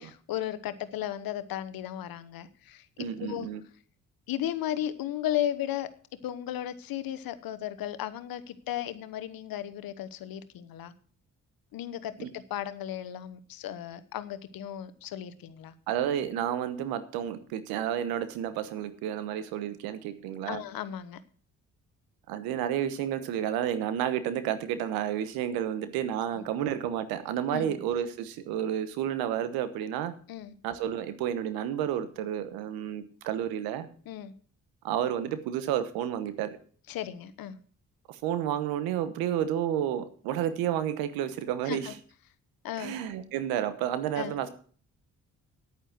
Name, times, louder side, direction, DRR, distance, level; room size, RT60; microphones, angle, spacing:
voice 1, 0.0-2.9 3.2-3.5 4.3-5.9 6.2-10.9 11.7-15.7 20.5-21.2 26.4-26.5 27.5-27.8 30.3-30.5 34.1-34.3 36.9-37.6 41.6-41.9 42.6-43.0 44.2-44.4, left 11 dB, 75° left, 13 dB, 1.1 m, -35 dB
voice 2, 3.0-3.6 12.2-12.3 15.9-20.6 22.3-30.1 30.6-33.9 34.8-36.5 38.1-41.9 42.8-44.5, right 10 dB, 90° right, 12 dB, 1.1 m, -31 dB
10.0 x 9.1 x 6.0 m, 0.44 s
supercardioid pair, 50°, 35 cm